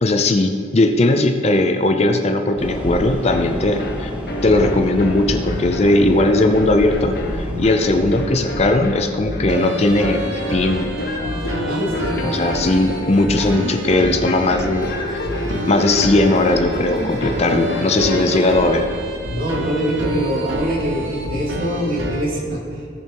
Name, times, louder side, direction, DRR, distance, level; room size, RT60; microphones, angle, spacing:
voice 1, 0.0-4.1 4.4-10.9 12.2-14.9 15.5-18.9, left 2 dB, 35° left, 6 dB, 0.5 m, -18 dB
sound 1, 2.6-8.4, equal, 5° right, 0.9 m, -29 dB
sound 2, 3.3-18.8, left 1 dB, 55° left, 0.9 m, -30 dB
sound 3, 4.5-22.2, equal, 85° right, 1.1 m, -28 dB
voice 2, 11.6-12.3 17.2-17.4 19.3-22.9, right 1 dB, 45° right, -4 dB, 2.5 m, -24 dB
17.0 x 7.0 x 2.9 m, 2.4 s
head